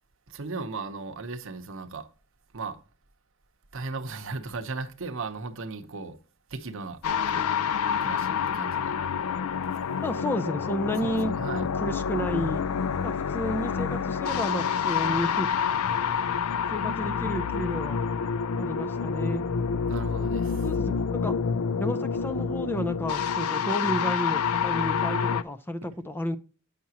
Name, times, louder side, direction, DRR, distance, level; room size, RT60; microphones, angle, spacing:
voice 1, 0.3-2.1 2.5-2.8 3.7-6.2 6.5-7.5 8.0-8.9 11.0-11.6 19.9-20.7, right 3 dB, 65° right, 0.8 m, -36 dB
sound 1, 7.0-25.4, left 6 dB, 85° left, 0.4 m, -28 dB
voice 2, 10.0-11.3 11.8-12.7 13.0-15.5 16.7-18.1 18.6-19.5 20.6-21.4 21.8-26.4, equal, 10° left, 0.4 m, -31 dB
8.4 x 5.8 x 2.8 m
head